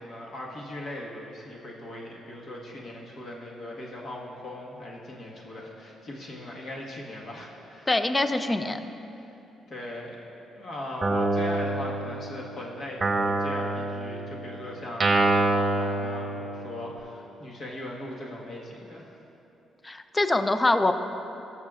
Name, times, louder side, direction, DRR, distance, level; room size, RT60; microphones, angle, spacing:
voice 1, 0.0-7.9 9.2-9.3 9.7-10.3 10.5-19.1, left 1 dB, 55° left, -3 dB, 1.6 m, -39 dB
voice 2, 7.9-8.8 19.8-20.9, left 2 dB, 20° left, 9 dB, 0.5 m, -24 dB
Guitar, 11.0-12.5 13.0-16.9, right 2 dB, 25° right, 0.9 m, -26 dB
18.5 x 6.4 x 2.5 m, 3.0 s
cardioid pair, 90°, 0 cm